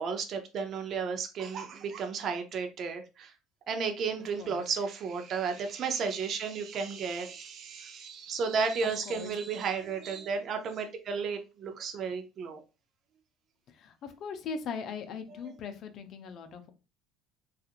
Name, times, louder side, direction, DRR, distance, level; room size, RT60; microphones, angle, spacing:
voice 1, 0.0-3.3 3.7-12.6, right 5 dB, 50° right, 5 dB, 0.5 m, -33 dB
voice 2, 13.7-16.7, left 5 dB, 55° left, 7 dB, 0.5 m, -40 dB
2.8 x 2.4 x 2.4 m, 0.30 s
supercardioid pair, 110°, 0 cm